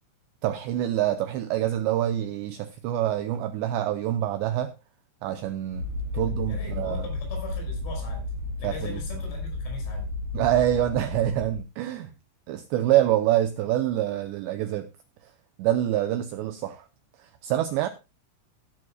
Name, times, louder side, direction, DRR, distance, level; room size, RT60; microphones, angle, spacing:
voice 1, 0.4-4.7 5.2-5.8 6.1-7.1 8.6-9.0 10.3-12.1 12.5-14.9 15.6-16.9 17.2-17.9, right 12 dB, 85° right, 2.5 m, -26 dB
sound 1, 5.7-11.6, left 2 dB, 50° right, 3.0 m, -32 dB
voice 2, 6.1-8.3 8.6-10.1, left 3 dB, 85° left, 8.1 m, -40 dB
16.0 x 11.0 x 2.3 m
omnidirectional pair, 6.0 m